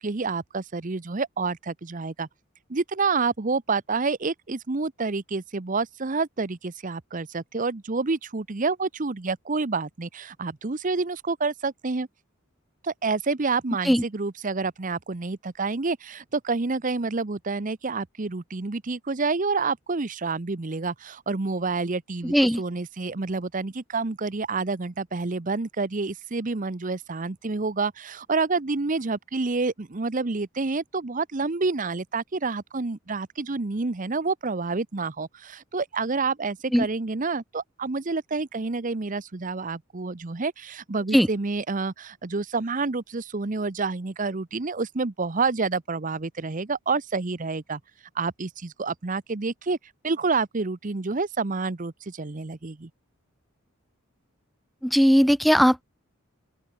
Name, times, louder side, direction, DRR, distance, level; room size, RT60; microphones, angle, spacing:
voice 1, 0.0-2.3 2.7-12.1 12.8-47.8 48.1-49.8 50.0-52.9, right 4 dB, 40° right, 0.8 m, -28 dB
voice 2, 22.2-22.6 36.7-36.9 41.1-41.3 54.8-55.8, equal, ahead, 0.4 m, -19 dB
open air
head